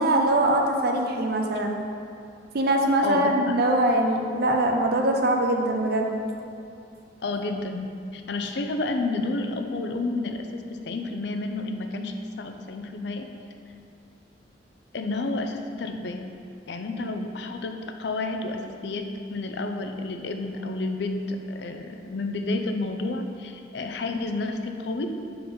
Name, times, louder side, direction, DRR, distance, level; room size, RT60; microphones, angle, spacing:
voice 1, 0.0-1.8 2.5-6.2, right 1 dB, 60° right, 2 dB, 0.6 m, -22 dB
voice 2, 3.0-3.5 7.2-13.3 14.9-16.3 16.7-25.1, left 2 dB, 70° left, 5 dB, 0.5 m, -30 dB
6.8 x 3.8 x 4.3 m, 2.5 s
head